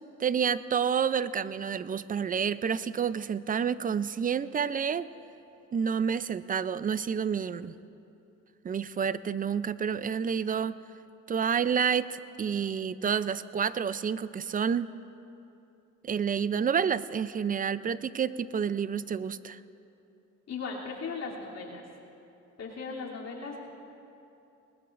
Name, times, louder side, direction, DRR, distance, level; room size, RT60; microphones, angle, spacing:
voice 1, 0.2-5.1 5.7-7.7 8.6-10.7 11.3-14.9 16.0-19.6, right 7 dB, 30° right, 15 dB, 0.4 m, -29 dB
voice 2, 20.5-21.8 22.6-23.6, left 4 dB, 60° left, -3 dB, 3.0 m, -37 dB
21.0 x 20.5 x 2.5 m, 2.8 s
cardioid pair, 90°, 30 cm